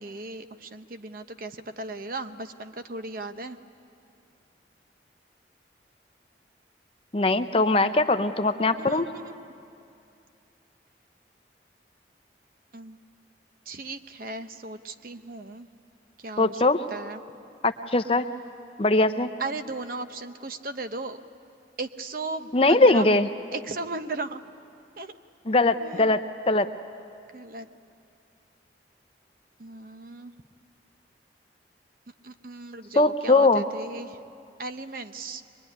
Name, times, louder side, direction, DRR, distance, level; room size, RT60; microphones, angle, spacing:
voice 1, 0.0-3.6 8.8-9.5 12.7-13.0 13.7-15.7 16.2-16.6 16.9-17.2 19.4-21.2 21.8-23.1 23.5-24.4 25.0-25.2 25.8-26.2 27.3-27.7 29.6-30.3 32.2-34.2 34.6-35.4, right 3 dB, 50° right, 9 dB, 0.8 m, -36 dB
voice 2, 7.1-9.0 16.4-16.8 17.6-18.2 18.8-19.3 22.5-23.3 25.5-26.7 33.0-33.6, left 2 dB, 30° left, 9 dB, 0.6 m, -21 dB
23.5 x 21.5 x 10.0 m, 2.6 s
head